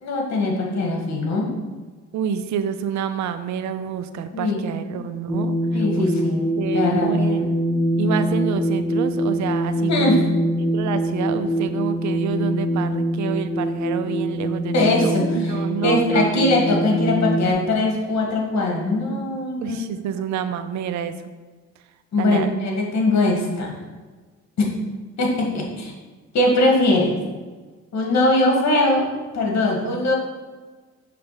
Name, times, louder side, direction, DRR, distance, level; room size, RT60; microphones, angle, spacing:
voice 1, 0.0-1.5 4.3-4.6 4.9-5.0 5.7-6.5 6.7-7.4 9.9-10.2 14.7-19.8 22.1-23.7 24.6-24.7 25.2-25.9 26.3-27.1 27.9-30.1, left 2 dB, 65° left, -1 dB, 1.6 m, -21 dB
voice 2, 2.1-6.1 6.6-7.6 8.0-10.3 10.6-16.5 19.6-21.1 22.2-22.5, right 8 dB, 70° right, 10 dB, 0.5 m, -28 dB
sound 1, 5.3-17.5, equal, 5° left, 0.8 m, -23 dB
5.8 x 3.3 x 5.5 m, 1.4 s
cardioid pair, 90°, 30 cm